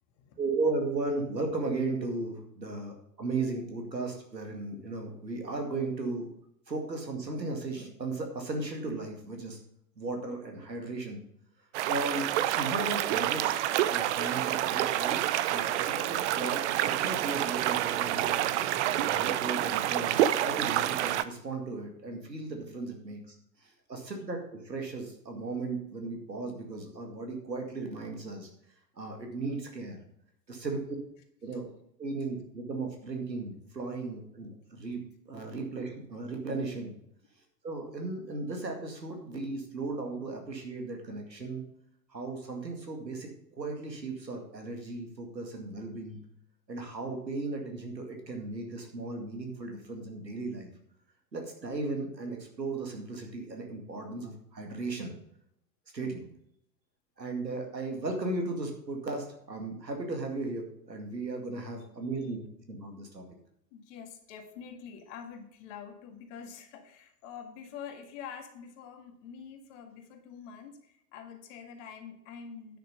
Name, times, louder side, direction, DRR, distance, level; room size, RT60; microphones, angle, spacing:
voice 1, 0.4-6.3 6.7-9.6 10.0-11.2 11.8-18.4 19.0-23.4 23.6-28.5 29.0-30.0 30.5-30.9 31.4-31.7 32.0-35.0 35.3-36.9 37.6-41.6 42.1-46.2 46.7-50.7 51.3-55.1 55.9-56.3 57.2-63.2, right 3 dB, 85° right, 3 dB, 2.2 m, -36 dB
sound 1, 11.7-21.2, right 13 dB, 45° right, 0.7 m, -28 dB
voice 2, 63.7-72.8, left 7 dB, 45° left, 5 dB, 2.0 m, -46 dB
10.0 x 6.5 x 5.3 m, 0.73 s
figure-of-eight pair, 90°, 49 cm